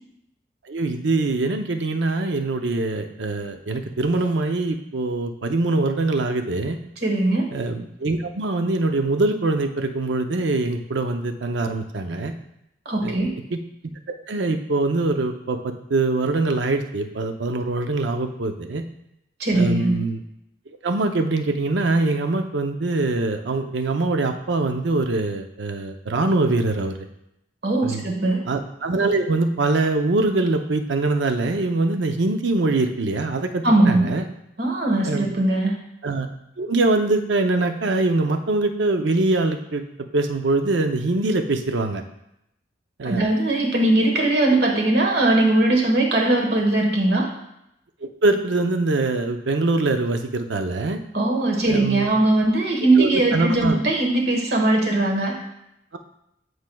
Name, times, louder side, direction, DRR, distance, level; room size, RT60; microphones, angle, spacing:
voice 1, 0.7-6.8 7.5-12.3 13.0-13.2 13.5-13.6 14.3-18.8 19.5-20.2 20.8-27.1 27.8-28.0 28.5-34.2 35.0-35.3 36.0-36.3 36.6-39.8 40.1-42.0 43.0-43.2 48.0-51.0 51.7-52.1 53.0-53.8, right 2 dB, 80° right, 6 dB, 0.6 m, -23 dB
voice 2, 7.0-7.5 12.8-13.3 19.4-19.9 27.6-28.4 33.6-34.1 34.6-35.8 43.0-47.3 51.1-55.4, right 2 dB, 60° right, 1 dB, 1.2 m, -20 dB
9.3 x 4.7 x 2.3 m, 0.82 s
head